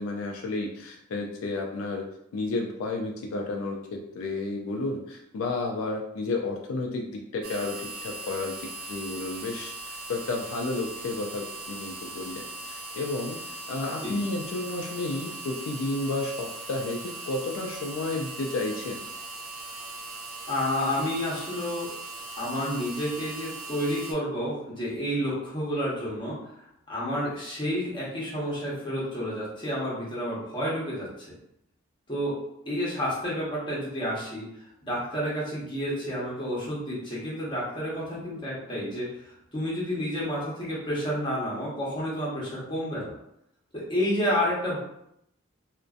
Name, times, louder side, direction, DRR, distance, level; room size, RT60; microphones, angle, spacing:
voice 1, 0.0-2.0 2.3-7.8 8.0-13.4 13.7-19.0, left 2 dB, 75° left, 1 dB, 0.3 m, -32 dB
sound 1, 7.4-24.1, right 2 dB, 90° right, 0.4 m, -39 dB
voice 2, 20.5-21.9 22.4-26.4 26.9-31.1 32.1-32.3 32.6-34.5 34.8-39.1 39.5-43.1 43.7-44.8, equal, 20° left, -7 dB, 0.8 m, -30 dB
2.5 x 2.1 x 2.3 m, 0.77 s
head